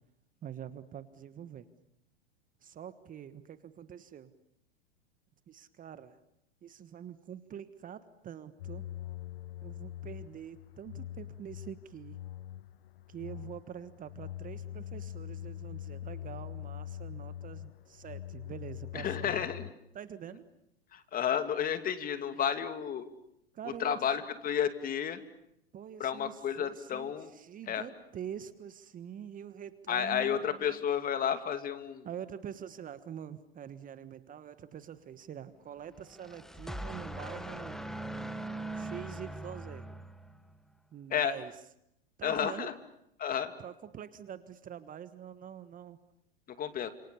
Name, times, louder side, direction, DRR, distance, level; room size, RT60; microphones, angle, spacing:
voice 1, 0.4-1.7 2.6-4.3 5.5-6.2 6.6-8.9 9.6-12.2 13.1-19.4 19.9-20.5 23.5-24.0 25.7-30.4 32.0-37.9 38.7-39.8 40.9-41.5 42.2-42.7 43.6-46.0, right 9 dB, 25° right, 13 dB, 1.4 m, -45 dB
sound 1, 8.6-19.7, left 12 dB, 70° left, 1.0 m, -43 dB
voice 2, 18.9-19.7 20.9-23.1 23.6-25.2 26.0-27.3 27.7-27.8 29.9-32.1 41.1-41.3 42.2-42.7 43.2-43.5 46.6-46.9, left 8 dB, 30° left, 9 dB, 2.6 m, -31 dB
sound 2, 36.0-40.6, right 1 dB, ahead, 1.3 m, -41 dB
29.5 x 27.0 x 7.0 m, 0.79 s
hypercardioid pair, 105°, 30 cm